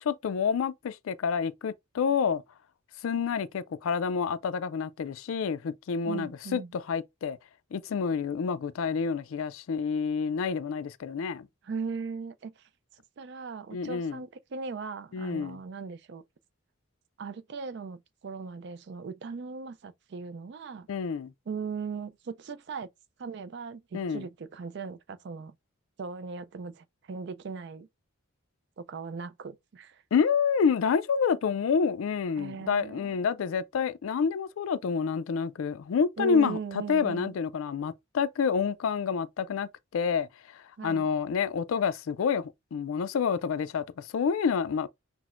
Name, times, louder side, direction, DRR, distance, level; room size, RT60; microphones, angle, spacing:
voice 1, 0.0-2.4 3.0-7.4 7.7-11.5 13.7-14.2 15.1-15.6 20.9-21.3 23.9-24.3 30.1-44.9, left 6 dB, 75° left, 0.3 m, -28 dB
voice 2, 6.1-6.7 11.6-12.5 13.2-16.2 17.2-20.9 21.5-22.9 23.2-25.5 26.0-27.9 28.8-30.0 32.4-33.2 36.2-37.3 40.8-41.1, right 5 dB, 55° right, 0.4 m, -38 dB
5.9 x 2.1 x 2.4 m
head